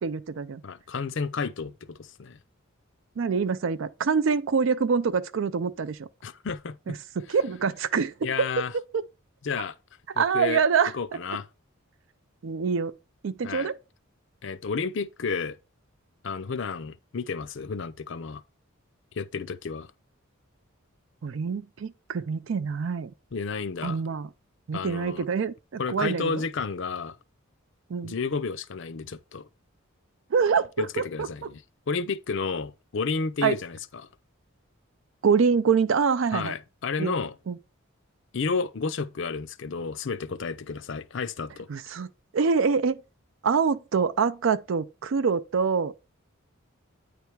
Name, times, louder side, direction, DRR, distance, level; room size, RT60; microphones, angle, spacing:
voice 1, 0.0-0.6 3.2-6.1 6.9-8.1 8.9-9.0 10.2-10.9 12.4-12.9 13.2-13.8 21.2-23.1 23.8-24.3 24.7-26.4 27.9-28.1 30.3-31.3 33.4-33.6 35.2-36.6 37.0-37.1 37.5-37.6 41.7-42.1 42.3-43.0 43.4-45.9, right 5 dB, 60° right, 0.4 m, -25 dB
voice 2, 0.6-2.4 6.2-7.0 8.2-8.7 9.4-9.8 10.1-10.6 10.9-11.5 13.4-13.7 14.4-15.6 16.2-18.4 19.2-19.9 23.3-24.0 24.7-25.2 25.8-27.2 28.0-29.5 30.8-31.6 31.9-34.1 36.3-37.4 38.3-41.7, left 5 dB, 55° left, 0.5 m, -31 dB
9.2 x 3.4 x 4.6 m
head